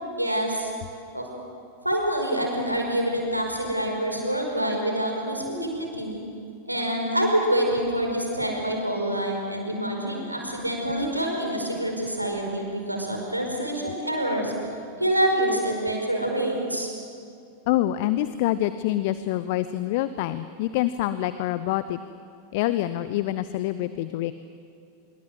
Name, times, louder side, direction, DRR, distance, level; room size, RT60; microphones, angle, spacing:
voice 1, 0.2-0.7 1.1-1.3 1.8-6.2 6.6-14.5 14.9-16.9, right 1 dB, 85° right, 1 dB, 5.1 m, -26 dB
voice 2, 17.7-22.0 22.5-24.3, left 14 dB, 50° left, 14 dB, 0.8 m, -26 dB
25.5 x 23.5 x 7.8 m, 2.5 s
figure-of-eight pair, 90°, 0 cm